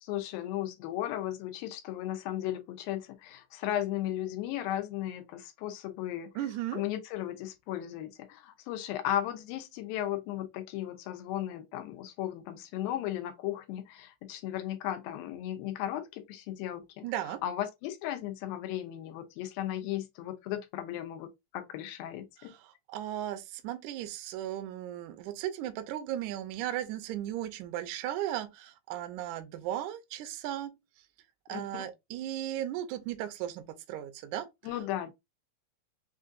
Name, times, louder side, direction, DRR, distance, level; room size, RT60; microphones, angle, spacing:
voice 1, 0.0-6.3 6.7-22.5 31.5-31.8 34.6-35.1, left 12 dB, 85° left, 2.5 m, -36 dB
voice 2, 6.4-6.8 17.0-17.4 22.4-30.7 31.5-34.5, right 12 dB, 80° right, 1.8 m, -36 dB
5.9 x 2.5 x 2.5 m
omnidirectional pair, 4.1 m